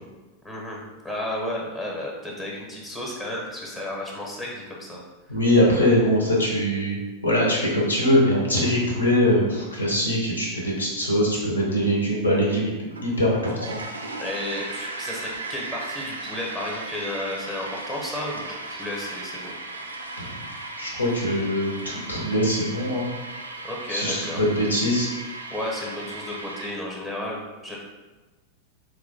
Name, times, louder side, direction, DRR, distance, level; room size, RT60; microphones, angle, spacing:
voice 1, 0.4-5.0 14.2-19.6 23.6-24.4 25.5-27.8, left 1 dB, 15° left, -3 dB, 0.8 m, -33 dB
voice 2, 5.3-13.8 20.2-20.3 20.8-23.1 23.9-25.1, equal, 75° left, -3 dB, 0.9 m, -22 dB
sound 1, 12.9-26.7, right 2 dB, 75° right, 0.3 m, -36 dB
3.7 x 3.0 x 2.6 m, 1.2 s
figure-of-eight pair, 90°, 0 cm